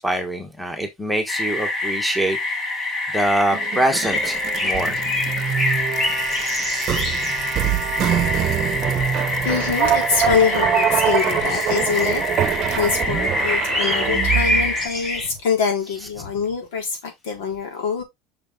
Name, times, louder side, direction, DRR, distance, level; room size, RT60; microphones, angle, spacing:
voice 1, 0.0-2.4 3.1-5.0, right 1 dB, ahead, 1.3 m, -24 dB
sound 1, 1.3-14.9, left 2 dB, 35° left, 2.0 m, -26 dB
sound 2, 3.5-14.8, right 10 dB, 30° right, 0.9 m, -24 dB
sound 3, 4.0-15.3, left 1 dB, 20° left, 1.6 m, -28 dB
voice 2, 9.4-18.0, left 6 dB, 85° left, 4.2 m, -24 dB
6.7 x 5.9 x 3.7 m
cardioid pair, 170°, 0 cm